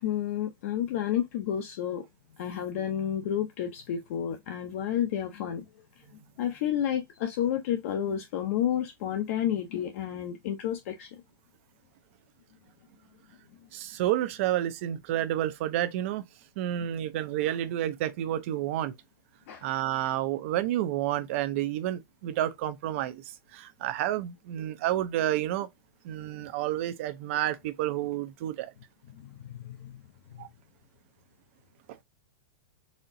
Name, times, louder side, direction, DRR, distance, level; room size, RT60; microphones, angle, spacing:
voice 1, 0.0-2.0 2.4-5.7 6.4-11.1 19.5-19.7 26.2-26.4 29.1-30.0 30.3-30.5, left 10 dB, 40° left, 0.6 m, -31 dB
voice 2, 13.7-16.2 16.6-18.9 19.6-25.7 26.0-28.7 30.4-30.5, right 12 dB, 35° right, 0.5 m, -30 dB
4.2 x 2.8 x 2.5 m
supercardioid pair, 175°, 12 cm